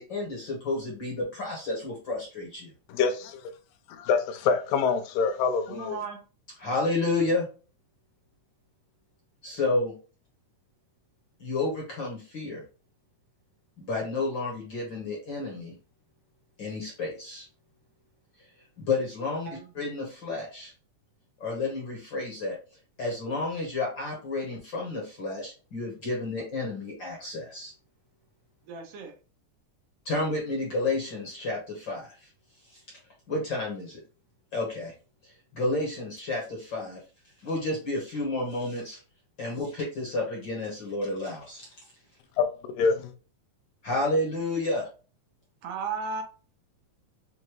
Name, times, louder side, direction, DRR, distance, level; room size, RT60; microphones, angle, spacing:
voice 1, 0.0-2.7 6.6-7.5 9.4-9.9 11.4-12.6 13.8-15.7 16.6-17.5 18.8-19.5 19.7-20.7 21.4-22.6 23.0-27.7 30.0-32.1 32.7-32.8 33.3-34.0 34.5-34.9 35.2-37.0 37.4-39.0 39.4-41.7 43.8-44.9, left 2 dB, 50° left, 1.5 m, -31 dB
voice 2, 2.9-3.4 4.0-6.0 42.4-43.1, left 5 dB, 85° left, 2.4 m, -26 dB
voice 3, 5.7-6.2 19.5-19.9 28.6-29.2 45.6-46.2, right 5 dB, 75° right, 2.6 m, -35 dB
6.4 x 2.6 x 3.0 m
omnidirectional pair, 3.9 m